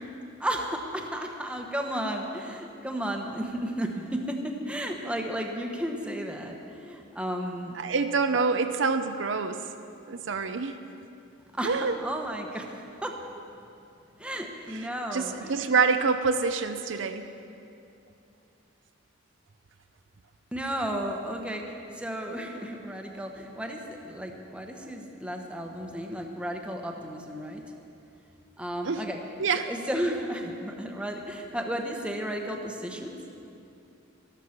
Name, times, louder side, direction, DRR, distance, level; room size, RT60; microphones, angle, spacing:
voice 1, 0.4-7.8 8.3-8.4 11.5-13.2 14.2-15.6 20.5-27.6 28.6-29.2 29.7-33.2, equal, 5° right, 2 dB, 1.1 m, -33 dB
voice 2, 7.7-9.7 10.1-10.8 11.6-11.9 14.7-17.3 28.8-29.0 29.4-29.7, right 4 dB, 65° right, 8 dB, 0.6 m, -26 dB
13.0 x 13.0 x 5.9 m, 2.6 s
head